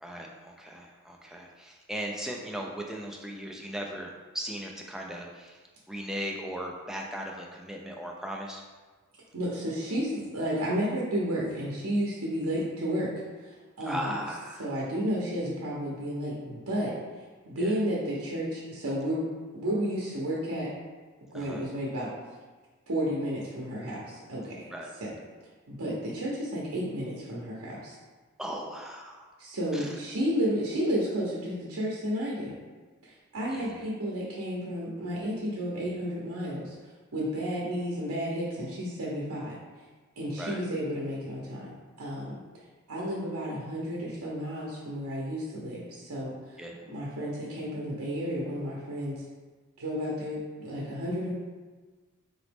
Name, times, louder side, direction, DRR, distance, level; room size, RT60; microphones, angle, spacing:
voice 1, 0.0-5.6 5.9-8.6 12.5-12.6 13.8-14.7 17.6-17.8 21.3-21.7 24.7-24.9 28.4-29.3 29.7-30.0 33.5-33.9 40.4-40.6 46.6-46.8, equal, ahead, 0 dB, 0.3 m, -38 dB
voice 2, 9.3-13.1 13.4-14.1 14.6-16.9 17.4-19.2 19.5-20.7 21.3-22.1 22.9-24.6 25.0-25.1 25.7-27.9 29.4-32.5 33.3-36.7 37.1-39.5 40.2-42.4 42.9-46.3 46.9-49.2 49.8-51.3, equal, 75° right, -5 dB, 0.7 m, -32 dB
3.9 x 2.9 x 3.4 m, 1.3 s
head